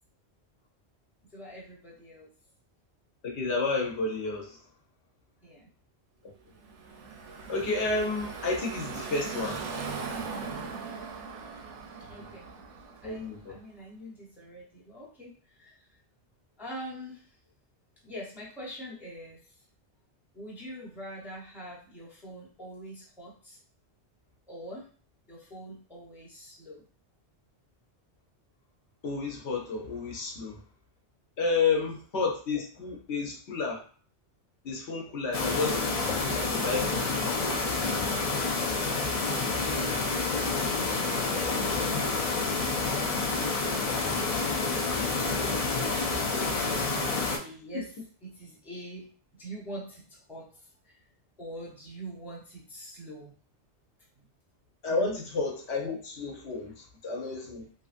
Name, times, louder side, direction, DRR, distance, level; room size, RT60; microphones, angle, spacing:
voice 1, 1.3-2.3 5.4-5.7 12.1-12.5 13.0-16.0 16.6-17.4 18.0-19.6 20.3-23.6 24.5-24.9 25.3-26.8 31.7-31.8 40.6-41.7 42.4-43.3 43.6-46.3 47.0-51.0 51.4-53.3 54.2-54.3 54.9-55.2 56.6-56.7 57.6-57.7, right 1 dB, ahead, -4 dB, 0.6 m, -45 dB
voice 2, 3.2-4.6 7.5-9.6 12.2-12.3 13.0-13.6 29.0-30.6 31.4-33.8 34.6-37.4 46.4-46.5 54.8-57.6, left 4 dB, 75° left, 0 dB, 1.0 m, -31 dB
Car passing by / Traffic noise roadway noise, 6.6-13.5, right 5 dB, 90° right, 0.9 m, -39 dB
sound 1, 35.3-47.4, left 3 dB, 60° left, 0.4 m, -28 dB
2.9 x 2.5 x 2.5 m, 0.41 s
omnidirectional pair, 1.2 m